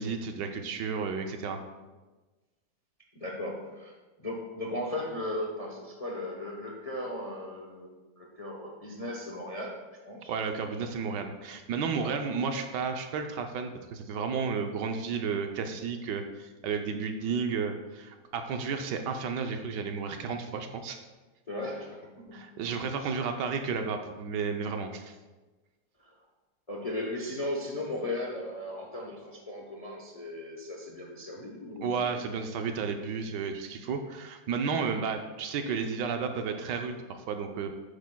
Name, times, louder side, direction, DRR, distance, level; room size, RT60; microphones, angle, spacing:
voice 1, 0.0-1.6 10.3-21.0 22.3-25.1 31.8-37.7, right 5 dB, 70° right, 6 dB, 1.2 m, -32 dB
voice 2, 3.1-7.9 8.2-9.8 10.0-10.3 12.0-12.1 21.5-22.4 23.0-23.1 26.0-26.1 26.7-31.9, left 1 dB, 35° left, -1 dB, 0.6 m, -37 dB
9.9 x 8.2 x 2.2 m, 1.2 s
omnidirectional pair, 2.0 m